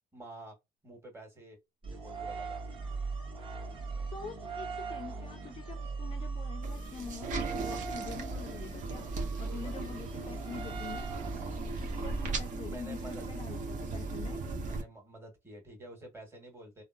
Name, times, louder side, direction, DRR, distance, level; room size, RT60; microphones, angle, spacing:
voice 1, 0.1-0.6 0.8-1.6 1.8-2.6 9.0-9.8 12.6-13.3 14.6-16.8, right 1 dB, 15° right, 1.5 m, -50 dB
sound 1, 1.8-12.8, right 4 dB, 30° right, 1.1 m, -40 dB
voice 2, 4.1-9.1 9.4-11.1 11.8-14.4, left 6 dB, 35° left, 0.5 m, -45 dB
sound 2, 6.6-14.8, right 3 dB, 50° right, 0.7 m, -38 dB
3.4 x 2.1 x 2.5 m
cardioid pair, 110°, 17 cm